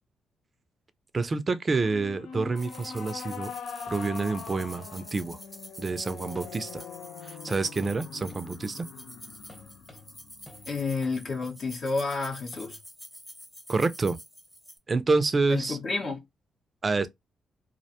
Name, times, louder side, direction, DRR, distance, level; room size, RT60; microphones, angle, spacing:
voice 1, 1.1-3.5 3.9-5.4 5.8-6.8 7.2-8.9 13.7-14.2 14.9-15.8 16.8-17.1, right 3 dB, 35° right, 0.4 m, -28 dB
sound 1, 1.8-11.2, left 6 dB, 85° left, 0.3 m, -43 dB
sound 2, 2.6-14.8, equal, ahead, 0.6 m, -48 dB
sound 3, 4.6-4.7 6.4-7.1 7.5-8.4 9.5-12.8, left 2 dB, 25° left, 1.0 m, -53 dB
voice 2, 10.7-12.8 15.5-16.2, left 3 dB, 55° left, 0.7 m, -30 dB
2.4 x 2.1 x 2.7 m
cardioid pair, 85°, 0 cm